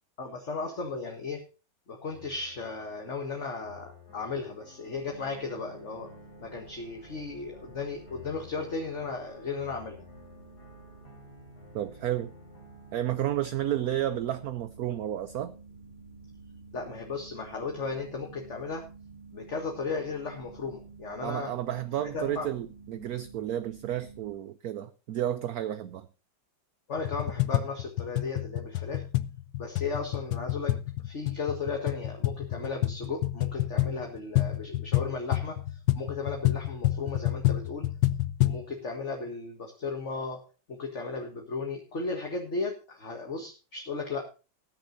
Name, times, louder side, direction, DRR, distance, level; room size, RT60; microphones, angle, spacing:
voice 1, 0.2-1.4 1.9-6.1 6.4-10.1 16.7-18.8 19.3-21.5 22.0-22.5 26.9-29.0 29.6-30.7 31.0-37.9 38.4-40.4 40.7-44.2, left 4 dB, 40° left, 3 dB, 2.0 m, -35 dB
sound 1, 2.1-14.1, left 3 dB, 60° left, 4.2 m, -53 dB
sound 2, 4.9-24.3, right 4 dB, 90° right, 3.9 m, -51 dB
voice 2, 11.7-12.3 12.9-15.5 21.2-26.1, right 12 dB, 65° right, 13 dB, 1.1 m, -31 dB
sound 3, 27.0-38.7, left 15 dB, 80° left, 1.5 m, -29 dB
19.0 x 10.0 x 2.7 m, 0.33 s
omnidirectional pair, 2.0 m